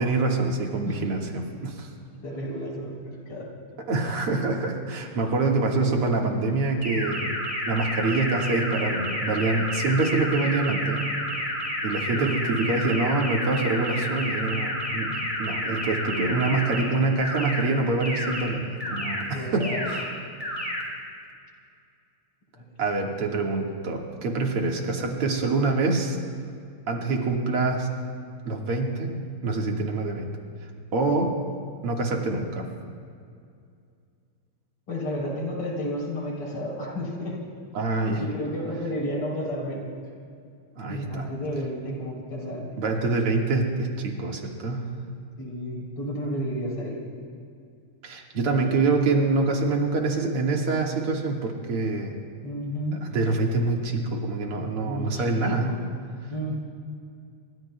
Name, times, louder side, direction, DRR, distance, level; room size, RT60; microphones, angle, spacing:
voice 1, 0.0-1.9 3.9-7.2 7.7-11.1 11.8-15.1 15.4-20.1 22.8-26.2 26.9-27.9 28.5-29.2 29.4-30.3 30.9-31.3 31.8-32.7 37.7-38.2 40.8-41.2 42.8-44.9 48.0-52.1 53.1-55.7, right 3 dB, 85° right, 0 dB, 2.6 m, -25 dB
voice 2, 2.2-3.5 12.1-12.7 15.0-15.2 19.3-19.9 22.6-22.7 34.9-37.4 38.2-39.9 40.9-42.8 45.4-47.0 52.4-53.0 54.8-55.9 56.3-56.5, equal, 90° left, -2 dB, 4.3 m, -32 dB
sound 1, 6.8-16.8 17.2-17.6 18.0-18.4 18.8-19.2 19.6-20.0 20.4-20.8, equal, 15° left, 4.8 m, -30 dB
26.5 x 24.0 x 2.2 m, 2.3 s
omnidirectional pair, 2.4 m